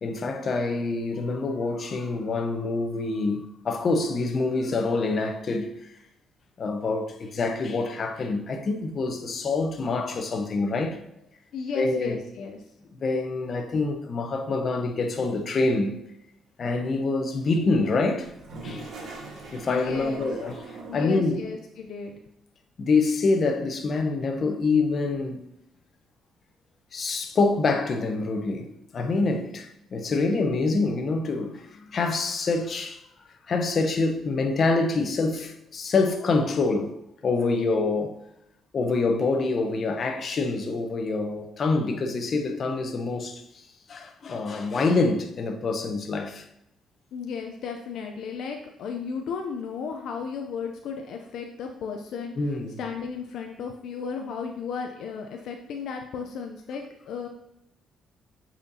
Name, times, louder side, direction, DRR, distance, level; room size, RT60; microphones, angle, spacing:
voice 1, 0.0-5.7 6.6-11.0 11.7-12.2 13.0-16.0 16.6-18.3 18.6-18.9 19.5-21.4 22.8-25.4 26.9-33.0 33.5-38.1 38.7-46.4 52.4-52.8, left 3 dB, 50° left, 0.8 m, -26 dB
voice 2, 11.5-12.6 19.7-20.3 20.9-22.2 47.1-57.3, left 5 dB, 75° left, 0.5 m, -34 dB
Toilet flush, 18.2-21.3, right 2 dB, 70° right, 1.5 m, -41 dB
8.0 x 4.3 x 2.8 m
cardioid pair, 90°, 0 cm